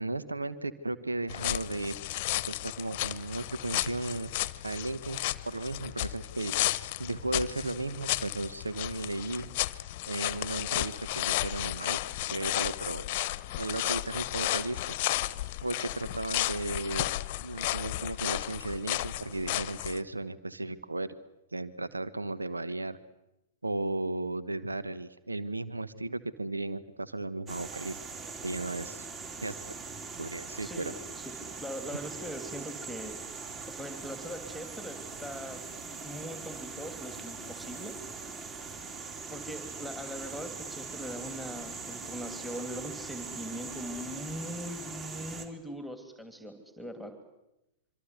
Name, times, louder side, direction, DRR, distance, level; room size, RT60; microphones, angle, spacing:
voice 1, 0.0-1.9 2.5-4.3 4.6-5.2 5.4-9.5 10.1-12.0 12.3-13.0 13.6-14.8 15.6-17.1 17.4-21.1 21.5-23.0 23.6-28.0 28.4-29.1 29.4-29.6 30.2-30.9, right 2 dB, 80° right, 14 dB, 1.2 m, -35 dB
sound 1, 1.3-20.0, left 17 dB, 45° left, 1.0 m, -33 dB
sound 2, 27.5-45.5, right 4 dB, 25° right, 3.8 m, -41 dB
voice 2, 30.6-33.2 33.7-35.6 36.0-37.9 39.3-47.1, equal, 5° right, 7 dB, 2.9 m, -41 dB
26.0 x 25.0 x 8.3 m, 0.92 s
figure-of-eight pair, 105°, 0 cm